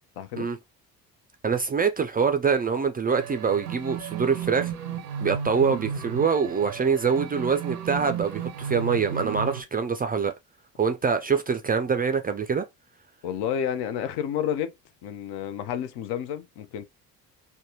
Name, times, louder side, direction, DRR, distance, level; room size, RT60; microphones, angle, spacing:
voice 1, 0.2-0.5 13.2-14.7 15.0-16.8, left 9 dB, 60° left, 0.7 m, -30 dB
voice 2, 1.4-4.7 5.2-10.3 10.8-12.6, right 6 dB, 20° right, 0.4 m, -25 dB
sound 1, 3.1-9.6, right 7 dB, 80° right, 0.6 m, -34 dB
3.2 x 2.1 x 2.9 m
hypercardioid pair, 50°, 46 cm